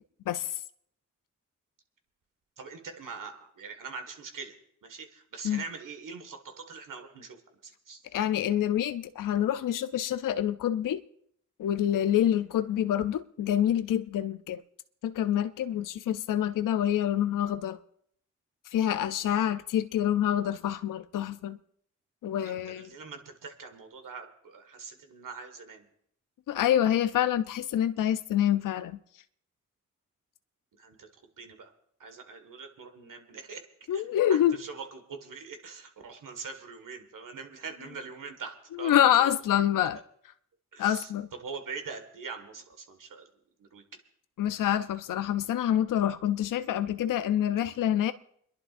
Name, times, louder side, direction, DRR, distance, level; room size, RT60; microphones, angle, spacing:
voice 1, 2.6-4.6 4.8-7.4 7.6-8.0 22.4-25.9 30.8-31.7 32.0-34.0 34.3-39.3 40.7-43.3 43.6-43.8, right 5 dB, 75° right, 1.7 m, -43 dB
voice 2, 8.1-11.0 11.6-14.6 15.0-17.8 18.7-21.6 22.2-22.9 26.5-29.0 33.9-34.6 38.8-40.0 40.8-41.3 44.4-48.1, left 11 dB, 75° left, 0.5 m, -26 dB
29.5 x 11.0 x 2.5 m
supercardioid pair, 45°, 32 cm